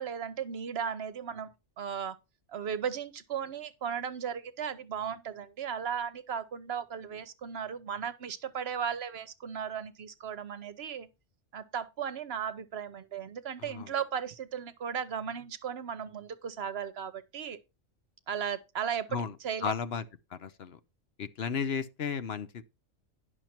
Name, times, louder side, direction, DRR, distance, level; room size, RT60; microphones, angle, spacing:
voice 1, 0.0-2.2 2.5-11.1 11.5-17.6 18.3-19.7, right 7 dB, 60° right, 1.0 m, -36 dB
voice 2, 19.6-20.0 20.3-20.8 21.2-22.6, left 6 dB, 60° left, 1.0 m, -34 dB
10.5 x 6.5 x 4.3 m
omnidirectional pair, 1.3 m